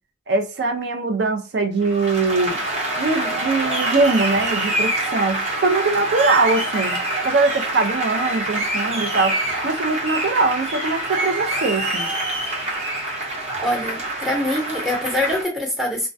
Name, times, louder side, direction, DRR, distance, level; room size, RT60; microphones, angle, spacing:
voice 1, 0.3-2.6 3.0-12.1, right 3 dB, 60° right, 0.4 m, -22 dB
Applause, 1.8-15.4, right 2 dB, 35° right, 0.8 m, -25 dB
voice 2, 13.6-16.1, left 1 dB, 5° right, 0.7 m, -24 dB
2.2 x 2.1 x 2.6 m
head